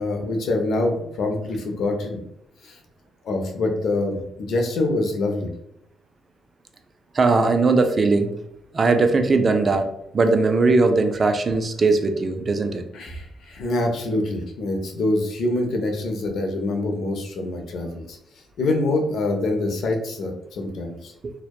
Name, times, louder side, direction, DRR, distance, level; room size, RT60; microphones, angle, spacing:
voice 1, 0.0-2.2 2.6-2.8 3.2-5.5 12.9-18.2 18.6-21.1, left 2 dB, 70° left, 3 dB, 0.5 m, -25 dB
voice 2, 7.1-8.3 8.7-9.9 10.1-12.8 21.2-21.3, right 3 dB, 40° right, 6 dB, 0.3 m, -19 dB
2.7 x 2.1 x 2.2 m, 0.76 s
cardioid pair, 90°, 0 cm